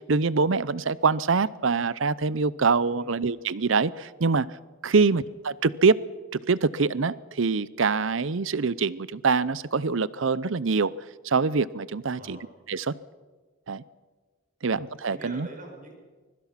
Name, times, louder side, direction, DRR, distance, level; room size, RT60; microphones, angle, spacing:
voice 1, 0.0-4.5 4.8-6.0 6.3-10.9 11.2-12.4 12.7-12.9 13.7-13.8 14.6-15.5, right 4 dB, 65° right, 19 dB, 0.6 m, -24 dB
voice 2, 12.1-12.6 14.6-15.9, right 2 dB, 40° right, 2 dB, 5.7 m, -45 dB
24.0 x 22.0 x 5.8 m, 1.3 s
head